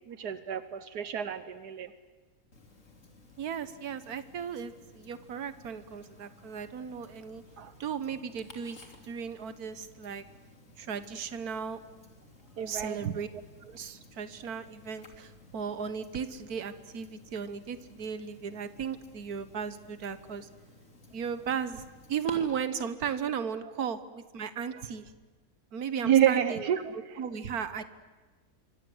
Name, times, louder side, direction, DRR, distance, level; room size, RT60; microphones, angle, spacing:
voice 1, 0.1-1.9 7.6-7.7 12.6-13.1 26.0-26.8, right 10 dB, 85° right, 12 dB, 1.6 m, -28 dB
Tick-tock, 2.5-22.3, left 2 dB, 50° left, 3.6 m, -54 dB
voice 2, 3.4-7.4 7.8-8.8 9.0-10.2 10.8-11.8 12.7-13.3 13.6-20.5 21.1-25.1 25.7-27.8, right 7 dB, 70° right, 12 dB, 1.8 m, -36 dB
26.5 x 24.5 x 8.0 m, 1.3 s
omnidirectional pair, 1.6 m